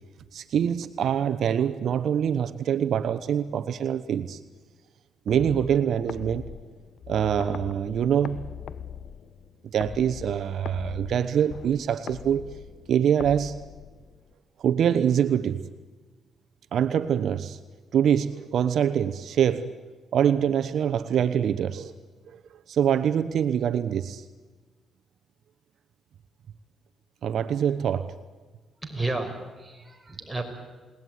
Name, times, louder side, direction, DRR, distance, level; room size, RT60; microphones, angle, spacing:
voice 1, 0.3-4.4 5.3-6.5 7.1-8.4 9.6-12.4 12.9-13.5 14.6-15.7 16.7-17.6 17.9-19.7 20.1-21.9 22.3-22.4 22.7-24.2 27.2-28.1, right 9 dB, 70° right, 12 dB, 1.0 m, -24 dB
sound 1, 5.3-14.3, left 8 dB, 65° left, 1.0 m, -41 dB
voice 2, 28.8-30.4, right 2 dB, 10° right, 2 dB, 5.7 m, -32 dB
29.0 x 19.0 x 9.5 m, 1.3 s
cardioid pair, 80°, 0 cm